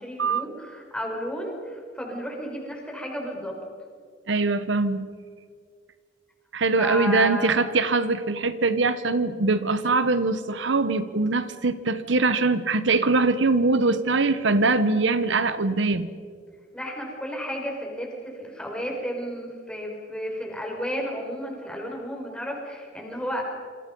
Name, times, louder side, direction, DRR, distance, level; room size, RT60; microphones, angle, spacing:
voice 1, 0.0-3.6 6.8-7.6 16.7-23.7, equal, 5° left, -1 dB, 5.5 m, -33 dB
voice 2, 4.3-5.1 6.5-16.1, right 3 dB, 80° right, 12 dB, 1.1 m, -22 dB
28.0 x 26.5 x 5.4 m, 2.1 s
head